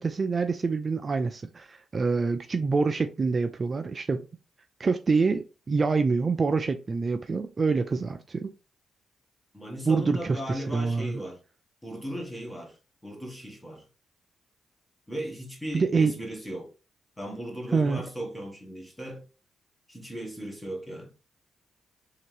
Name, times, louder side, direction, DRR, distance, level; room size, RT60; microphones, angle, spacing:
voice 1, 0.0-4.3 4.8-8.5 9.9-11.2 15.7-16.1 17.7-18.0, right 4 dB, 40° right, 0.4 m, -26 dB
voice 2, 9.5-11.4 11.8-13.9 15.1-16.7 17.2-19.3 19.9-21.1, equal, 10° left, 1.4 m, -37 dB
3.3 x 2.8 x 3.2 m
cardioid pair, 80°, 0 cm